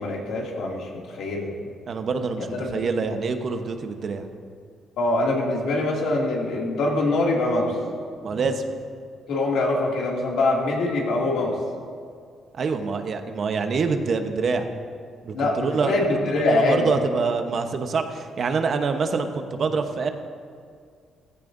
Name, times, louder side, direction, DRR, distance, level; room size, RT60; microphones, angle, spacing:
voice 1, 0.0-1.5 2.4-2.7 5.0-7.8 9.3-11.6 15.3-16.9, left 2 dB, 80° left, -2 dB, 2.5 m, -24 dB
voice 2, 1.9-4.3 8.2-8.6 12.5-14.7 15.2-20.1, right 4 dB, 55° right, 6 dB, 1.0 m, -26 dB
15.5 x 14.5 x 2.7 m, 2.2 s
cardioid pair, 90°, 0 cm